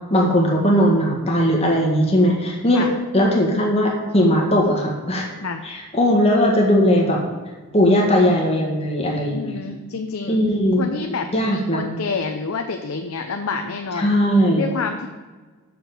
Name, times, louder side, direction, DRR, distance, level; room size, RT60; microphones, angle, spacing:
voice 1, 0.1-2.9 3.1-5.3 5.6-7.2 7.7-9.6 10.3-10.9 11.3-11.8 14.0-14.7, equal, 30° left, -1 dB, 1.7 m, -18 dB
voice 2, 9.3-10.4 10.8-14.1 14.6-15.1, left 4 dB, 85° left, 5 dB, 0.6 m, -28 dB
6.8 x 5.9 x 6.9 m, 1.3 s
head